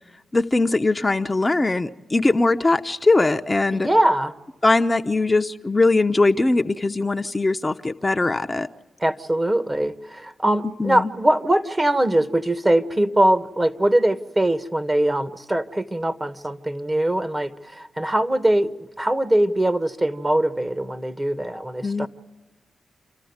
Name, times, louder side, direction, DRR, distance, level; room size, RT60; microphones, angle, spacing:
voice 1, 0.3-3.9 4.6-8.7 10.8-11.1 21.8-22.1, left 2 dB, 30° left, 6 dB, 0.9 m, -20 dB
voice 2, 3.7-4.3 9.0-22.1, right 1 dB, 25° right, 10 dB, 1.5 m, -22 dB
28.5 x 14.0 x 9.7 m, 1.2 s
supercardioid pair, 45°, 0 cm